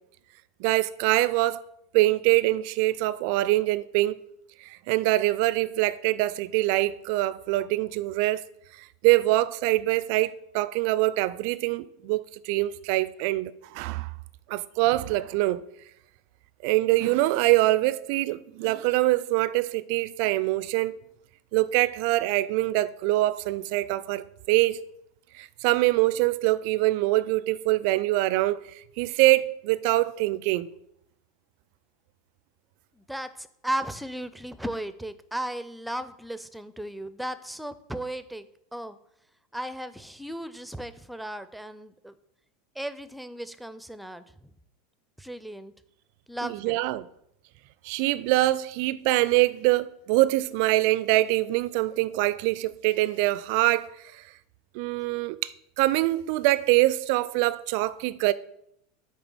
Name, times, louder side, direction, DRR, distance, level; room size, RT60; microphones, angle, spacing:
voice 1, 0.6-1.6 1.9-4.2 4.6-8.4 8.8-14.1 14.5-15.6 16.6-21.0 21.5-24.8 25.3-30.7 46.4-47.1 47.8-54.2 54.7-55.5 55.8-58.3, right 18 dB, 55° right, 0.4 m, -24 dB
voice 2, 33.0-38.5 38.7-39.0 39.5-42.1 42.8-44.2 45.2-45.7 46.3-46.8, right 1 dB, ahead, 0.5 m, -35 dB
8.9 x 3.3 x 6.1 m
figure-of-eight pair, 85°, 0 cm